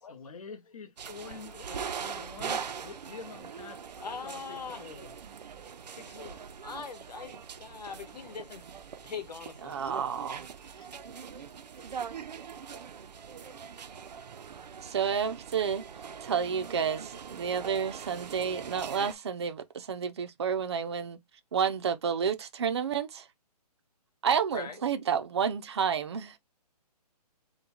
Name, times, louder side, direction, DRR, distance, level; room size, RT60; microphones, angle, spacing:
voice 1, 0.0-3.8 4.2-5.1 10.7-10.9, left 5 dB, 60° left, 1.1 m, -46 dB
sound 1, 1.0-19.1, right 6 dB, 90° right, 0.6 m, -42 dB
voice 2, 4.0-4.9 6.0-8.8 9.0-9.8 24.5-24.8, left 6 dB, 80° left, 1.3 m, -42 dB
voice 3, 9.6-10.4 14.8-15.8 16.2-21.2 21.5-23.3 24.2-26.4, right 7 dB, 40° right, 0.5 m, -30 dB
3.8 x 2.3 x 4.3 m
hypercardioid pair, 175°, 21 cm